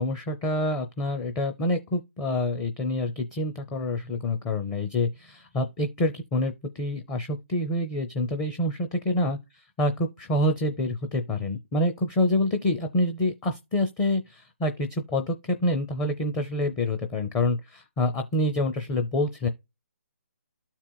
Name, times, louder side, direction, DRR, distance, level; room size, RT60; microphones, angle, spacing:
voice 1, 0.0-19.5, left 1 dB, 15° left, 0.5 m, -27 dB
13.0 x 4.4 x 2.2 m
hypercardioid pair, 150°, 8 cm